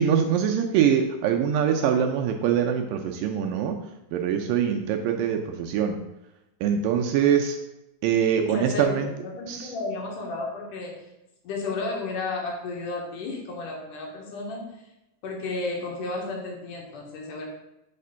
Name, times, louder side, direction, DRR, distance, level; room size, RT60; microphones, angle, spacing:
voice 1, 0.0-3.8 4.1-5.9 6.6-7.6 8.0-9.1 9.5-9.7, right 8 dB, 80° right, 4 dB, 2.1 m, -23 dB
voice 2, 8.4-8.9 9.2-10.9 11.4-14.6 15.2-17.5, left 3 dB, 70° left, -1 dB, 2.4 m, -32 dB
5.8 x 4.3 x 5.5 m, 0.93 s
omnidirectional pair, 4.2 m